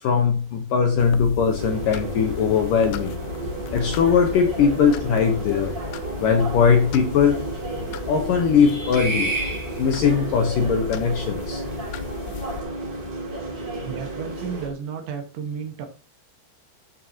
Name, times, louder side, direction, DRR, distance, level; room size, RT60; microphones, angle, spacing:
voice 1, 0.0-3.2 3.7-5.7 6.2-7.4 8.1-11.6, left 6 dB, 70° left, 4 dB, 2.1 m, -20 dB
sound 1, 1.0-12.6, left 9 dB, 90° left, 2.2 m, -36 dB
sound 2, 1.6-14.7, right 3 dB, 30° right, 3.0 m, -32 dB
voice 2, 13.8-15.9, right 6 dB, 80° right, 3 dB, 3.9 m, -32 dB
14.5 x 7.0 x 2.9 m, 0.35 s
omnidirectional pair, 5.1 m